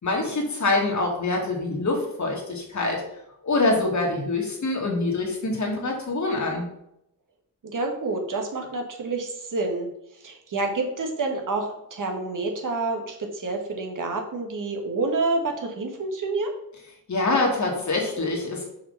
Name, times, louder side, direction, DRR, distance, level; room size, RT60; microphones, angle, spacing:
voice 1, 0.0-3.0 3.4-6.6 17.1-18.7, left 2 dB, 50° left, 0 dB, 2.1 m, -25 dB
voice 2, 7.6-9.9 10.2-16.5, right 3 dB, 60° right, 2 dB, 1.5 m, -28 dB
6.0 x 4.9 x 5.6 m, 0.78 s
wide cardioid pair, 110°, 36 cm